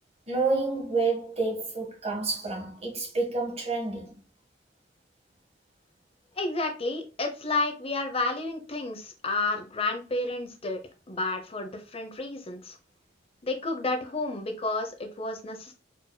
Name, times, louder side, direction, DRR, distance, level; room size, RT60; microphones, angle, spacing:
voice 1, 0.3-4.1, right 3 dB, 35° right, 1.5 m, -29 dB
voice 2, 6.4-10.8 11.1-12.8 13.4-15.7, left 2 dB, 30° left, 0.8 m, -31 dB
4.5 x 3.0 x 2.2 m
head